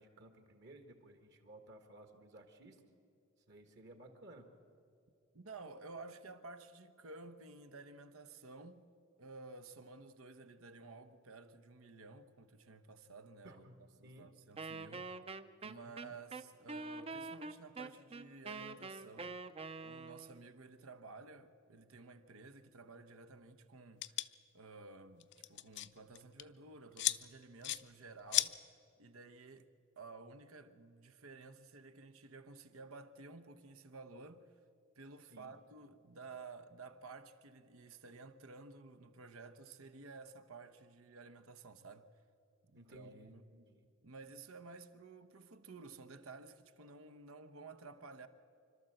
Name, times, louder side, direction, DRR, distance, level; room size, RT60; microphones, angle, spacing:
voice 1, 0.0-2.8 3.5-4.5 13.4-14.3 15.8-16.1 35.3-35.5 42.7-43.9, right 1 dB, 55° right, 1.7 m, -57 dB
voice 2, 5.3-8.9 9.2-13.6 14.0-15.1 15.6-19.4 19.8-24.2 24.5-28.6 29.0-29.7 30.0-34.5 35.0-42.1 42.6-43.5 44.0-48.3, right 3 dB, 90° right, 1.0 m, -53 dB
Wind instrument woodwind instrument, 14.6-20.4, right 3 dB, 30° right, 0.5 m, -46 dB
sound 1, 24.0-24.3 25.2-25.9 26.1-26.4 27.0-27.2 27.6-27.8 28.3-28.5, left 15 dB, 55° left, 0.5 m, -33 dB
26.5 x 12.5 x 7.8 m
head